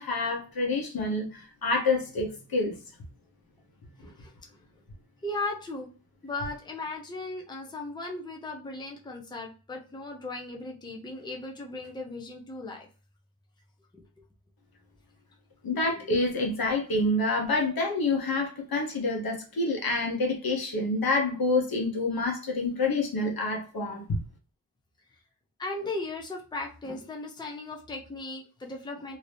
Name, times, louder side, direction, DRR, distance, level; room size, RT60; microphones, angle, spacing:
voice 1, 0.0-2.8 15.6-24.0, left 2 dB, 70° left, 1.0 m, -27 dB
voice 2, 4.0-4.3 5.2-5.9 6.2-12.9 15.9-16.1 25.6-29.2, left 2 dB, 10° left, 0.6 m, -37 dB
2.8 x 2.7 x 3.2 m
wide cardioid pair, 135°, 38 cm